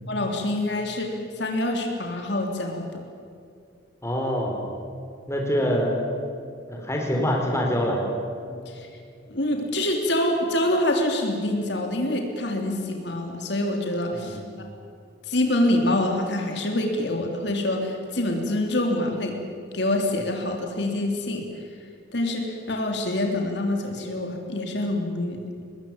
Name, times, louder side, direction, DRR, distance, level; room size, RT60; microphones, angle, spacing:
voice 1, 0.1-3.0 8.7-8.9 9.3-14.4 15.3-19.4 19.7-21.4 22.1-25.4, left 1 dB, 60° left, 2 dB, 3.4 m, -26 dB
voice 2, 4.0-4.6 5.3-6.0 6.7-8.0 14.1-14.5, equal, 15° left, 0 dB, 4.4 m, -25 dB
24.0 x 21.0 x 9.0 m, 2.4 s
head